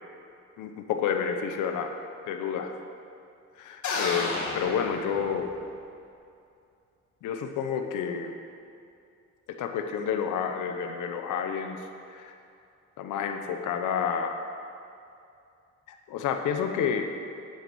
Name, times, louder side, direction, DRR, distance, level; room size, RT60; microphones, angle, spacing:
voice 1, 0.6-1.9 2.3-2.8 3.6-5.5 7.2-8.3 9.6-12.3 13.0-14.3 16.1-17.1, left 7 dB, 90° left, 5 dB, 1.0 m, -30 dB
sound 1, 3.8-5.8, left 3 dB, 70° left, 1.9 m, -31 dB
9.0 x 8.8 x 7.8 m, 2.5 s
cardioid pair, 90°, 30 cm